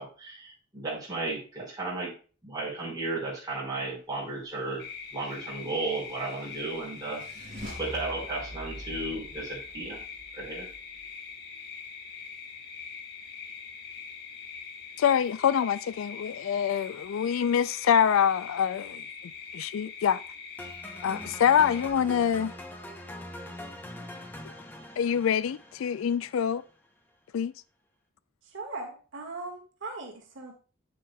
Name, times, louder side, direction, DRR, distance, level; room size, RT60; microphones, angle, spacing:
voice 1, 0.0-2.1 2.4-4.8 5.1-7.2 7.8-10.0 10.3-10.7, right 2 dB, 20° right, 4.5 m, -34 dB
sound 1, 4.8-21.9, left 6 dB, 50° left, 1.3 m, -43 dB
sound 2, 5.5-11.1, equal, 40° right, 3.6 m, -45 dB
voice 2, 15.0-19.0 19.5-20.2 21.0-22.5 25.0-26.6 27.3-27.5, left 8 dB, 80° left, 0.3 m, -25 dB
sound 3, 20.6-26.7, left 1 dB, 10° left, 0.7 m, -43 dB
voice 3, 28.4-30.5, right 3 dB, 65° right, 1.7 m, -39 dB
9.4 x 7.7 x 2.3 m
head